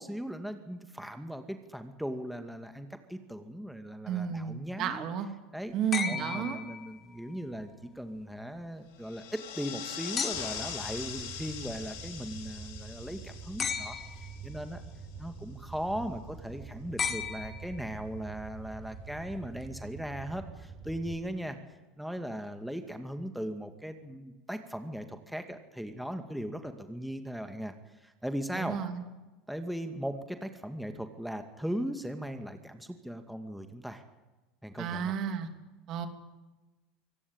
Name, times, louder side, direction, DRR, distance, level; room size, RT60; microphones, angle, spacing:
voice 1, 0.0-5.1 5.5-5.7 6.1-14.8 15.2-21.6 22.0-28.8 29.5-34.0 34.6-35.1, equal, ahead, 7 dB, 2.2 m, -38 dB
voice 2, 4.0-5.3 5.7-6.6 28.5-29.0 34.8-35.5 35.9-36.1, right 8 dB, 55° right, 7 dB, 3.1 m, -32 dB
sound 1, 5.9-7.3 10.2-10.8 13.6-14.4 17.0-18.0 19.6-19.7, left 6 dB, 30° left, 2.3 m, -35 dB
sound 2, 9.0-14.8, left 9 dB, 80° left, 4.5 m, -42 dB
Fire, 10.3-21.2, right 5 dB, 35° right, 7.4 m, -46 dB
24.0 x 17.5 x 8.9 m, 1.1 s
supercardioid pair, 95°, 0 cm